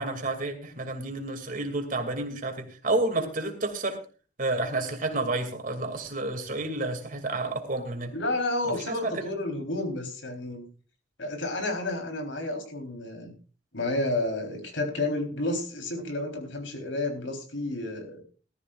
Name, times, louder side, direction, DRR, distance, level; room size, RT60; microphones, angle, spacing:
voice 1, 0.0-4.0 4.4-8.1 8.9-9.3, right 2 dB, 45° right, 5 dB, 2.6 m, -30 dB
voice 2, 8.1-10.6 11.2-13.3 13.7-18.2, left 2 dB, 85° left, 4 dB, 3.9 m, -31 dB
19.5 x 13.5 x 2.5 m, 0.36 s
head